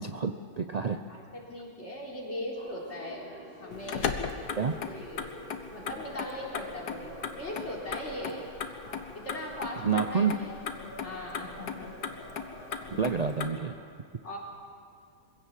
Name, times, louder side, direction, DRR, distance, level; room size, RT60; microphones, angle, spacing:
voice 1, 0.0-1.0 4.6-4.8 9.8-10.4 13.0-13.8, right 6 dB, 80° right, 7 dB, 0.3 m, -28 dB
voice 2, 1.1-3.3 3.6-4.2 4.8-5.3 5.7-8.4 9.1-10.5 10.8-11.9 12.7-12.8 14.2-14.4, left 1 dB, 45° left, -3 dB, 4.1 m, -39 dB
sound 1, 2.5-13.7, equal, 30° right, 5.7 m, -49 dB
Motor vehicle (road), 3.7-13.5, left 6 dB, 80° left, 1.7 m, -38 dB
23.5 x 16.5 x 7.5 m, 2.2 s
omnidirectional pair, 1.7 m